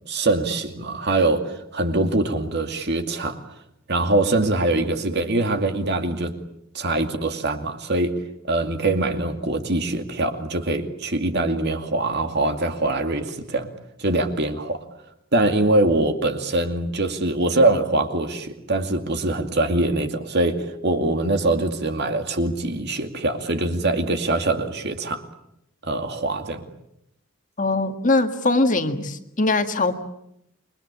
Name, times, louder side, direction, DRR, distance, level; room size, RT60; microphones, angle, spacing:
voice 1, 0.1-3.4 3.9-6.3 6.7-8.2 8.5-13.7 14.0-14.8 15.3-25.2 25.8-26.7, right 2 dB, 50° right, 2.4 m, -23 dB
voice 2, 27.6-29.9, left 2 dB, 35° left, 1.8 m, -21 dB
28.5 x 22.5 x 8.6 m
head